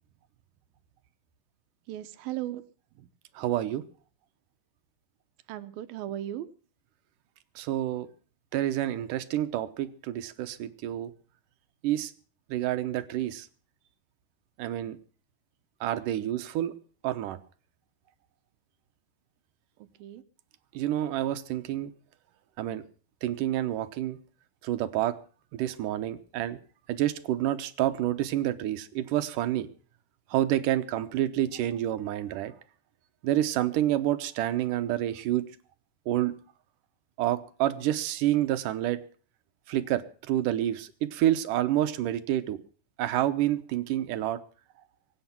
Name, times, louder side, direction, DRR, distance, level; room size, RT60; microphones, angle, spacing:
voice 1, 1.9-2.6 3.0-3.1 5.5-6.5 15.9-16.3 19.8-20.2, right 13 dB, 90° right, 11 dB, 2.8 m, -37 dB
voice 2, 3.4-3.8 7.6-8.1 8.5-11.1 11.8-12.1 12.5-13.5 14.6-15.0 15.8-16.7 17.0-17.4 20.7-21.9 22.6-22.8 23.2-24.2 24.6-25.2 25.5-26.6 26.9-29.7 30.3-32.5 33.2-35.5 36.1-36.4 37.2-39.0 39.7-42.6 43.0-44.4, right 13 dB, 75° right, 11 dB, 2.4 m, -28 dB
23.0 x 9.1 x 5.9 m, 0.41 s
omnidirectional pair, 4.1 m